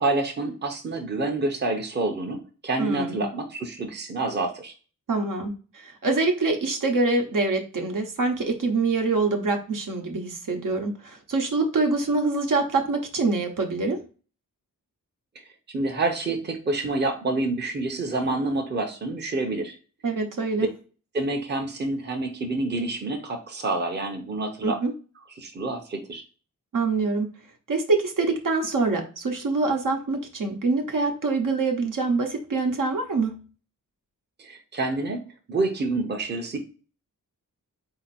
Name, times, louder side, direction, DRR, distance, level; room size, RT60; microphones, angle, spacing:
voice 1, 0.0-4.7 15.7-19.7 21.1-24.8 25.4-26.2 34.4-35.2 35.5-36.6, right 2 dB, 30° right, 2 dB, 0.7 m, -28 dB
voice 2, 2.8-3.2 5.1-5.5 5.8-14.0 20.0-20.7 24.6-24.9 26.7-27.3 27.7-33.4, right 3 dB, 70° right, 3 dB, 1.1 m, -25 dB
4.3 x 2.8 x 4.1 m, 0.36 s
wide cardioid pair, 155°, 33 cm